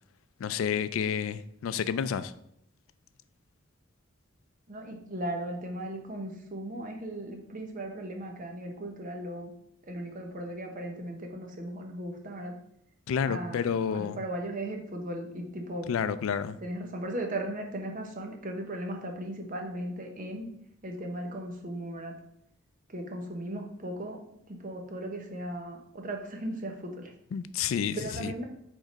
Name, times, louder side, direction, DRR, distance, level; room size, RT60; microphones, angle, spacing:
voice 1, 0.4-2.3 13.1-14.2 15.9-16.6 27.3-28.3, left 7 dB, 85° left, 14 dB, 0.3 m, -30 dB
voice 2, 4.7-9.5 9.9-12.6 13.2-15.9 16.6-20.5 20.8-22.2 22.9-24.2 24.5-27.1 27.9-28.4, right 1 dB, 40° right, 3 dB, 0.9 m, -37 dB
5.1 x 3.8 x 5.1 m, 0.73 s
head